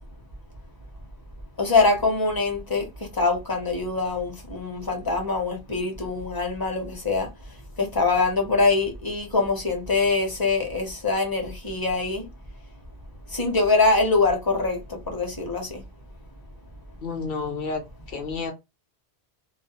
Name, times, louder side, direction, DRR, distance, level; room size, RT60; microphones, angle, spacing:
voice 1, 1.6-7.3 7.8-12.3 13.3-15.8, left 3 dB, 25° left, 0.6 m, -24 dB
voice 2, 17.0-17.8 18.1-18.5, left 4 dB, 60° left, 0.9 m, -30 dB
2.3 x 2.0 x 2.8 m
omnidirectional pair, 1.1 m